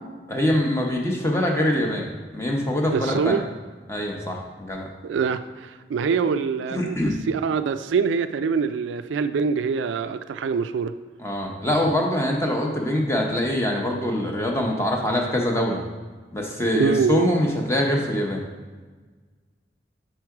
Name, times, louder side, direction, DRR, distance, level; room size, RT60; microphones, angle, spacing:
voice 1, 0.3-2.1 2.3-3.4 3.9-4.9 6.7-7.2 11.2-15.8 16.3-18.4, left 1 dB, 15° left, 0 dB, 0.6 m, -24 dB
voice 2, 2.9-3.4 5.0-10.9 16.7-17.3, right 5 dB, 90° right, 11 dB, 0.3 m, -24 dB
4.6 x 4.5 x 4.7 m, 1.4 s
head